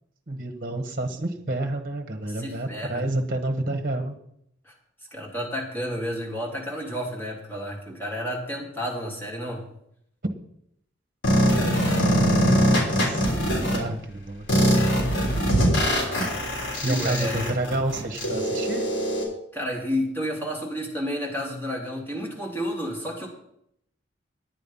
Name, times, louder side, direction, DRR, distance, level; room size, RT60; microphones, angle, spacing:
voice 1, 0.3-4.2 12.2-12.5 12.9-13.2 13.6-14.5 16.8-18.9, right 2 dB, 50° right, 5 dB, 1.2 m, -29 dB
voice 2, 2.3-3.0 4.6-4.7 5.1-9.6 16.8-17.5 19.5-23.3, equal, 10° left, -2 dB, 2.8 m, -31 dB
sound 1, 11.2-13.8 14.5-19.2, equal, 75° left, 3.5 m, -22 dB
10.5 x 8.8 x 5.5 m, 0.73 s
head